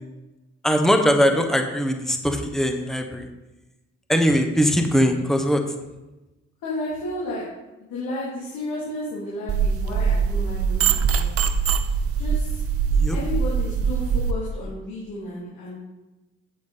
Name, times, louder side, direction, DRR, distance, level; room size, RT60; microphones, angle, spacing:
voice 1, 0.6-3.3 4.1-5.6 12.9-13.2, equal, ahead, 5 dB, 1.1 m, -21 dB
voice 2, 6.6-7.4 7.8-11.5 12.2-12.6 13.1-15.9, left 1 dB, 90° left, -7 dB, 2.6 m, -32 dB
sound 1, 9.5-14.3, right 6 dB, 50° right, 0.7 m, -22 dB
8.4 x 8.2 x 4.0 m, 1.0 s
cardioid pair, 90°, 30 cm